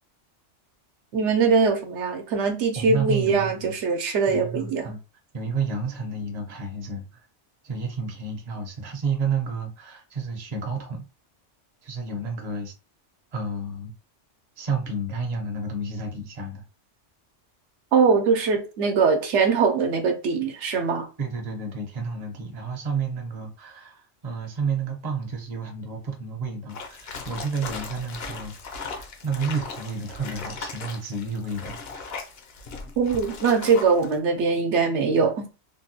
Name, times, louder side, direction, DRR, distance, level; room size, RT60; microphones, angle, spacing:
voice 1, 1.1-4.9 17.9-21.1 33.0-35.5, right 5 dB, 75° right, 0.9 m, -22 dB
voice 2, 2.8-3.7 4.3-5.0 5.3-7.2 7.6-11.1 11.8-12.7 13.3-13.9 14.6-16.6 21.2-32.1, right 4 dB, 40° right, 0.7 m, -31 dB
sound 1, 26.7-34.2, left 4 dB, 65° left, 0.8 m, -38 dB
3.4 x 2.2 x 2.7 m
omnidirectional pair, 1.2 m